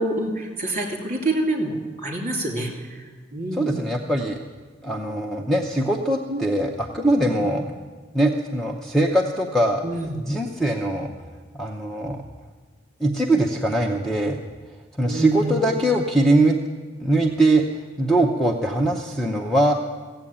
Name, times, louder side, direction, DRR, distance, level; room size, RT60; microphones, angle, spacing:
voice 1, 0.0-3.8 6.3-6.5 7.3-7.5 9.8-10.2 15.1-15.7, right 1 dB, 40° right, 2 dB, 2.8 m, -27 dB
voice 2, 3.5-4.4 4.8-7.7 8.1-9.8 10.2-11.1 11.5-12.2 13.0-14.4 15.0-16.6 17.0-17.6 18.0-19.7, right 1 dB, ahead, 1 dB, 0.7 m, -21 dB
16.0 x 7.8 x 8.6 m, 1.4 s
head